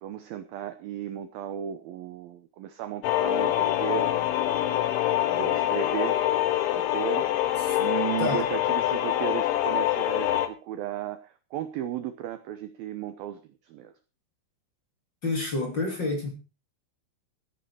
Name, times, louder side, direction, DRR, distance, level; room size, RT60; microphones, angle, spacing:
voice 1, 0.0-4.1 5.3-6.2 6.7-7.3 7.8-13.4 13.7-13.9, right 11 dB, 80° right, 2.1 m, -35 dB
sound 1, 3.0-10.5, left 13 dB, 80° left, 3.6 m, -25 dB
voice 2, 15.2-16.3, left 2 dB, 30° left, 2.7 m, -28 dB
16.0 x 10.0 x 4.8 m
omnidirectional pair, 5.4 m